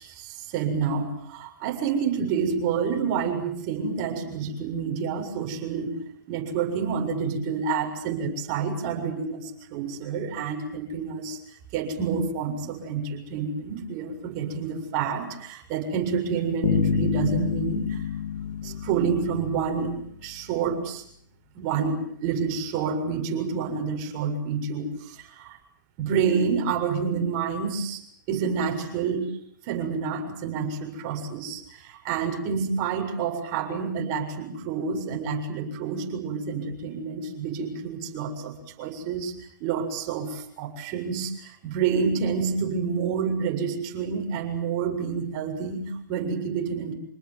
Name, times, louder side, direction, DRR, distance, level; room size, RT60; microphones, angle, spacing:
voice 1, 0.0-6.0 6.3-11.4 11.7-18.1 18.6-20.0 20.2-21.0 21.5-25.6 26.0-28.0 28.3-29.3 29.7-39.3 39.6-46.9, right 6 dB, 40° right, 4 dB, 7.2 m, -28 dB
sound 1, 16.6-20.0, left 7 dB, 60° left, 3.3 m, -28 dB
27.5 x 19.5 x 9.3 m, 0.68 s
hypercardioid pair, 135°, 10 cm